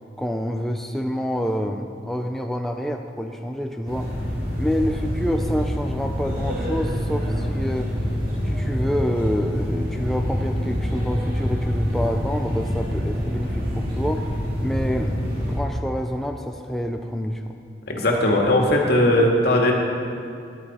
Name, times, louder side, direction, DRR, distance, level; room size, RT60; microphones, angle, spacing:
voice 1, 0.2-4.1 4.6-7.9 8.4-14.3 14.6-15.1 15.5-17.5, equal, ahead, 3 dB, 0.4 m, -27 dB
sound 1, 3.9-15.6, equal, 55° right, 2.7 m, -26 dB
voice 2, 17.9-19.7, left 1 dB, 60° left, 0 dB, 1.8 m, -18 dB
14.5 x 11.0 x 4.3 m, 2.6 s
head